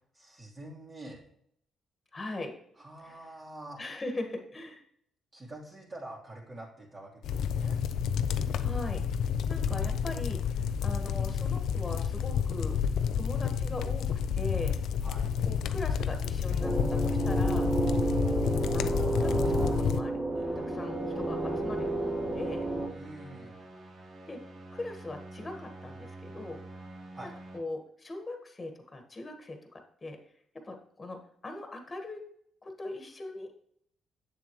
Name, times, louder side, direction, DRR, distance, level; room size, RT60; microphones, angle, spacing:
voice 1, 0.1-1.2 2.8-3.8 5.3-7.8 15.0-15.3 22.9-23.6 27.1-27.3, right 1 dB, 35° right, -4 dB, 2.8 m, -46 dB
voice 2, 2.1-2.5 3.0-3.3 3.8-4.8 8.6-9.0 9.5-12.8 13.1-14.8 15.4-17.7 18.4-22.7 24.3-24.5 24.7-26.6 27.2-30.2 30.6-32.2 32.6-33.5, left 2 dB, 25° left, 5 dB, 1.6 m, -40 dB
sound 1, 7.2-20.0, left 7 dB, 75° left, 0.4 m, -30 dB
sound 2, 16.6-22.9, right 2 dB, 10° right, 1.4 m, -31 dB
sound 3, 20.3-27.6, right 2 dB, 50° right, 1.6 m, -47 dB
8.0 x 7.2 x 3.1 m, 0.68 s
cardioid pair, 90°, 0 cm